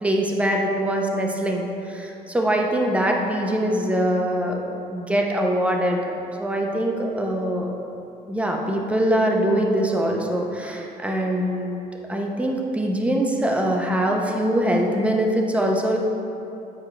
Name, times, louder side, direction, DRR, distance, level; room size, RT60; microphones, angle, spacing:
voice 1, 0.0-4.6 4.9-6.0 6.4-7.7 8.3-11.8 12.1-16.0, right 1 dB, 5° right, 0 dB, 0.8 m, -23 dB
9.0 x 4.7 x 3.3 m, 2.8 s
cardioid pair, 110°, 17 cm